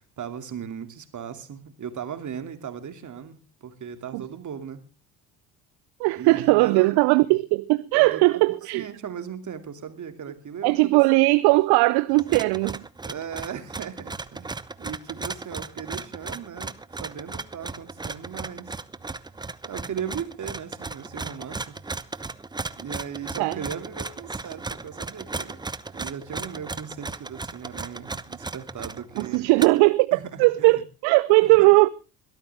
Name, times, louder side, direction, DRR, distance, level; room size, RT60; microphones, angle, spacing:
voice 1, 0.0-4.8 6.1-6.9 7.2-7.4 8.0-11.0 13.0-16.7 17.0-18.8 19.6-21.8 22.8-25.7 25.9-29.5 30.1-30.8 31.4-31.7, right 8 dB, 40° right, 2.7 m, -37 dB
voice 2, 6.0-8.9 10.6-12.8 23.4-23.6 29.2-31.9, right 24 dB, 60° right, 0.6 m, -19 dB
sound 1, 12.1-29.9, right 3 dB, 10° right, 0.7 m, -36 dB
22.0 x 13.0 x 3.5 m
hypercardioid pair, 60°, 45 cm